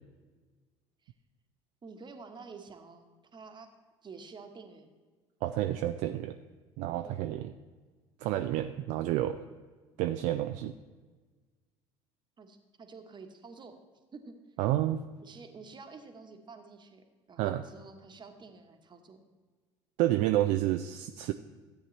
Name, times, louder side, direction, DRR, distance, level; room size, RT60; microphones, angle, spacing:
voice 1, 1.8-3.7 4.0-4.9 7.0-7.3 12.4-13.8 14.1-14.4 15.2-19.2, right 4 dB, 30° right, 6 dB, 1.2 m, -49 dB
voice 2, 5.4-6.4 6.8-7.5 8.2-9.4 10.0-10.8 14.6-15.0 17.4-17.6 20.0-21.3, right 13 dB, 60° right, 8 dB, 0.4 m, -29 dB
13.5 x 8.7 x 3.2 m, 1.4 s
figure-of-eight pair, 60°, 15 cm